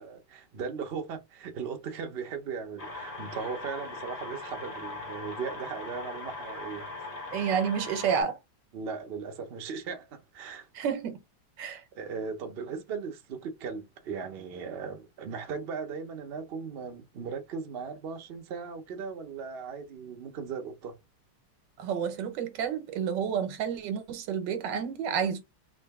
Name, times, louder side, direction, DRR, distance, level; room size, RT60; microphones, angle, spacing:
voice 1, 0.0-7.1 8.7-10.7 11.9-21.0, right 5 dB, 65° right, 0.6 m, -38 dB
sound 1, 2.8-8.2, left 2 dB, 60° left, 0.4 m, -40 dB
voice 2, 7.3-8.4 10.7-11.2 11.6-11.8 21.8-25.4, right 7 dB, 80° right, 1.4 m, -30 dB
3.7 x 2.6 x 3.4 m
omnidirectional pair, 1.9 m